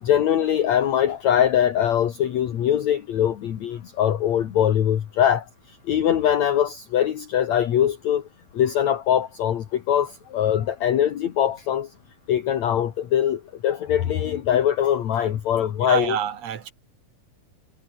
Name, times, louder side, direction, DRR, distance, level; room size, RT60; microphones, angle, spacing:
voice 1, 0.0-8.3 8.5-11.9 12.3-16.2, left 10 dB, 60° left, 2.7 m, -22 dB
voice 2, 15.8-16.7, right 9 dB, 50° right, 3.3 m, -27 dB
omnidirectional pair, 4.0 m